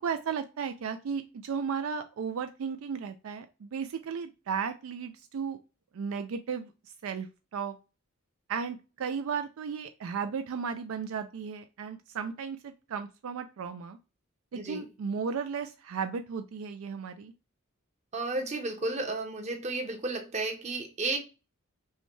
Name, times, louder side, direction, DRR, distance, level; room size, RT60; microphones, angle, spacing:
voice 1, 0.0-5.6 5.9-6.7 7.0-7.3 7.5-7.7 8.5-14.0 14.5-17.3, right 6 dB, 75° right, 0.4 m, -35 dB
voice 2, 14.5-14.9 18.1-21.2, right 2 dB, 30° right, 0.9 m, -33 dB
5.5 x 2.2 x 3.1 m
head